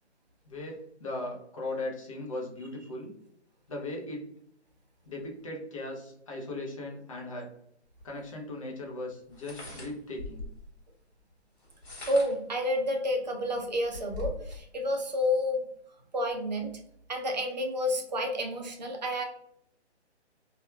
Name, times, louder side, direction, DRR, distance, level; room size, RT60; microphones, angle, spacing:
voice 1, 0.4-3.1 3.7-4.2 5.0-7.5 8.0-10.5, left 2 dB, 30° left, -1 dB, 0.5 m, -38 dB
sound 1, 8.0-8.1 9.3-10.7 11.6-12.5 13.1-13.2 13.5-14.6, left 3 dB, 65° left, 1.3 m, -41 dB
voice 2, 12.1-15.6 16.1-16.7 17.1-19.2, left 1 dB, 40° right, 2 dB, 0.5 m, -29 dB
2.7 x 2.2 x 2.2 m, 0.71 s
figure-of-eight pair, 140°, 34 cm